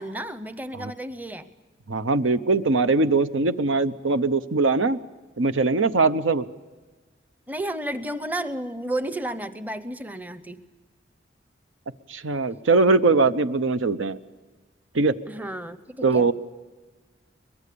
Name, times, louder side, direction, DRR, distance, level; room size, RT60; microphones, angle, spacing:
voice 1, 0.0-1.5 7.5-10.6 15.3-16.3, right 1 dB, 10° right, 12 dB, 0.7 m, -32 dB
voice 2, 1.9-5.0 5.4-6.5 12.1-14.2 14.9-15.2 16.0-16.3, right 3 dB, 90° right, 12 dB, 0.8 m, -21 dB
23.0 x 21.5 x 6.9 m, 1.3 s
head